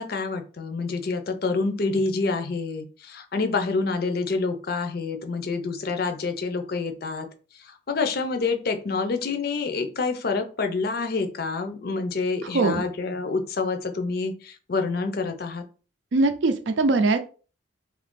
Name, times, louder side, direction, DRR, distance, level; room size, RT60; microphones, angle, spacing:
voice 1, 0.0-7.3 7.6-15.6, left 4 dB, 50° left, 6 dB, 0.5 m, -27 dB
voice 2, 12.5-12.8 16.1-17.2, right 3 dB, 70° right, 8 dB, 0.5 m, -21 dB
2.7 x 2.5 x 3.6 m, 0.36 s
head